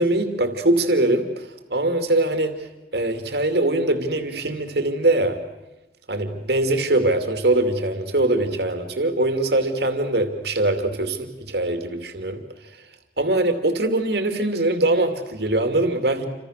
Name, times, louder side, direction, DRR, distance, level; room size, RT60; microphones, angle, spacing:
voice 1, 0.0-2.7 2.9-5.4 6.1-12.4 13.2-16.3, right 2 dB, 65° right, 7 dB, 2.6 m, -22 dB
29.0 x 26.0 x 6.6 m, 1.1 s
head